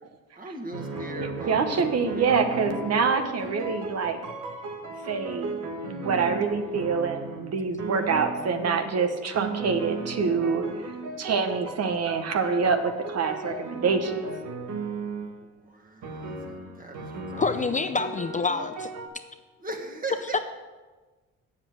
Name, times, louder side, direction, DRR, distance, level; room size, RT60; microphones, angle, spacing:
voice 1, 0.4-2.5 15.4-17.7 19.6-20.4, right 2 dB, 30° right, 4 dB, 1.7 m, -39 dB
sound 1, 0.7-7.5 7.8-8.9 9.3-15.4 16.0-19.1, right 3 dB, 80° right, 1.4 m, -36 dB
voice 2, 1.2-4.2 5.1-5.5 5.8-10.9 11.2-14.2, right 5 dB, 55° right, 7 dB, 1.1 m, -26 dB
voice 3, 17.4-18.9 20.3-20.4, left 4 dB, 25° left, 9 dB, 0.5 m, -26 dB
7.9 x 7.2 x 8.0 m, 1.3 s
cardioid pair, 90°, 30 cm